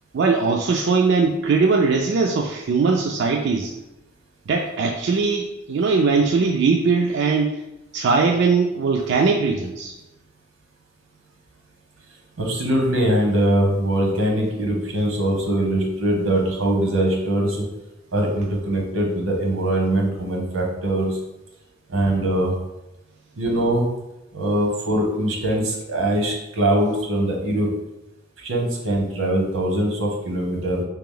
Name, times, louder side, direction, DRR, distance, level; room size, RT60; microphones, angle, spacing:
voice 1, 0.1-3.7 4.5-7.6 7.9-9.9, right 4 dB, 60° right, 1 dB, 0.3 m, -20 dB
voice 2, 12.4-17.6 18.1-21.2 21.9-22.5 23.4-23.9 24.3-27.7 28.4-30.8, right 1 dB, 90° right, 0 dB, 1.0 m, -22 dB
3.3 x 2.9 x 3.8 m, 0.97 s
head